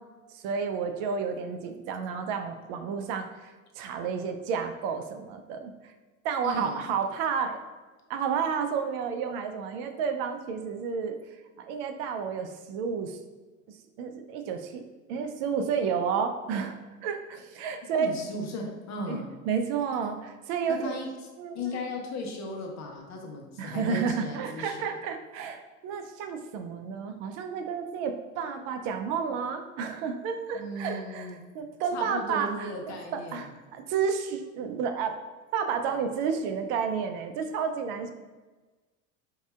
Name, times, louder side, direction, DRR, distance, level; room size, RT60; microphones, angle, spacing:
voice 1, 0.3-5.9 6.2-7.6 8.1-11.1 11.6-13.2 13.7-14.8 15.1-16.8 17.0-18.2 19.1-21.0 21.4-21.8 23.6-35.1 35.5-38.1, right 6 dB, 55° right, 6 dB, 0.6 m, -31 dB
voice 2, 6.4-6.8 17.9-19.3 20.7-21.1 21.5-24.9 30.5-31.4 31.9-33.5, left 2 dB, 40° left, 1 dB, 1.0 m, -36 dB
5.3 x 2.8 x 2.4 m, 1.3 s
hypercardioid pair, 80°, 42 cm